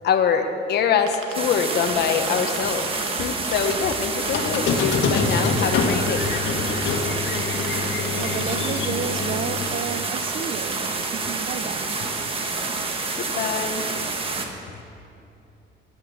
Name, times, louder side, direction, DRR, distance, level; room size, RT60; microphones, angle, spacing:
voice 1, 0.0-6.3 13.2-13.9, left 6 dB, 55° left, 6 dB, 1.1 m, -24 dB
sound 1, 0.9-1.3 1.7-3.9 4.3-4.7 5.1-6.9 7.2-8.4 9.2-9.3 9.6-9.7 10.2-10.3 10.4-10.5 10.7-11.0, right 9 dB, 90° right, 1.9 m, -35 dB
sound 2, 1.3-14.5, right 3 dB, 25° right, 1.2 m, -28 dB
Squeak, 4.3-9.6, left 5 dB, 70° left, 1.8 m, -26 dB
voice 2, 8.1-11.9, right 8 dB, 45° right, 13 dB, 0.5 m, -32 dB
16.0 x 10.0 x 7.2 m, 2.7 s
cardioid pair, 170°, 21 cm